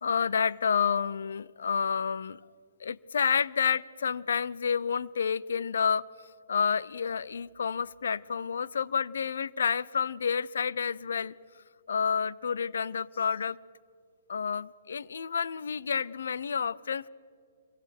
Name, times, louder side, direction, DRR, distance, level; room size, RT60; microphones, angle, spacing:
voice 1, 0.0-2.4 2.8-6.1 6.5-11.3 11.9-13.6 14.3-17.1, left 6 dB, 80° left, 21 dB, 0.7 m, -29 dB
26.0 x 23.5 x 6.0 m, 2.2 s
hypercardioid pair, 140°, 0 cm